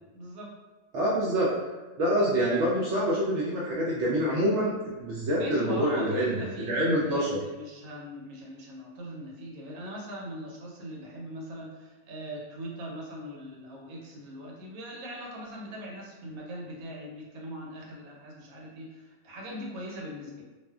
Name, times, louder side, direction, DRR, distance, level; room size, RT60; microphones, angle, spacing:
voice 1, 0.1-0.5 5.3-20.4, equal, 85° right, -2 dB, 1.1 m, -41 dB
voice 2, 0.9-1.5 2.0-7.4, equal, 65° right, -6 dB, 0.7 m, -26 dB
2.5 x 2.4 x 2.3 m, 1.2 s
omnidirectional pair, 1.5 m